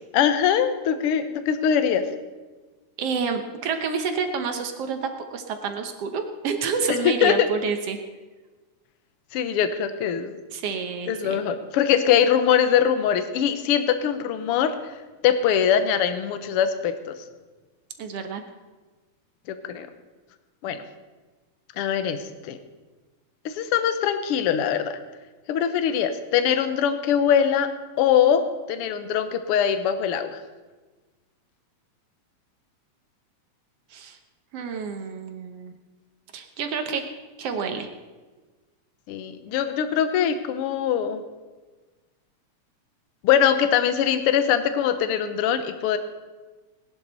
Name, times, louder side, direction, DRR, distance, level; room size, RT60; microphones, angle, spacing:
voice 1, 0.1-2.0 7.2-7.5 9.3-10.3 11.1-14.7 15.2-16.9 19.7-19.9 20.6-20.8 21.8-22.2 22.4-22.6 23.4-25.0 25.5-27.7 28.0-28.4 28.7-30.4 39.1-41.2 43.2-46.0, left 8 dB, 65° left, 9 dB, 1.6 m, -22 dB
voice 2, 3.0-8.0 10.5-11.4 18.0-18.4 33.9-34.2 34.5-35.7 36.3-37.0 37.4-37.9, right 5 dB, 65° right, 6 dB, 1.9 m, -29 dB
18.5 x 11.0 x 4.1 m, 1.3 s
omnidirectional pair, 3.4 m